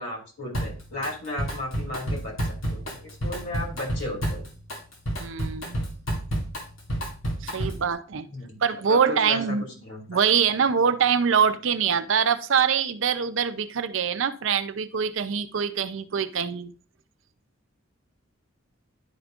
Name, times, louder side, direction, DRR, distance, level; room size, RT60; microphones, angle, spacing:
voice 1, 0.0-4.4 8.3-8.6 8.9-9.6 9.8-10.0, left 1 dB, 65° left, 2.7 m, -35 dB
Drum kit, 0.5-1.1 1.4-7.9, equal, 90° left, 2.1 m, -30 dB
voice 2, 5.2-5.8 7.4-8.3 8.6-9.7 10.1-16.7, right 7 dB, 70° right, 0.5 m, -24 dB
10.5 x 5.1 x 2.4 m
head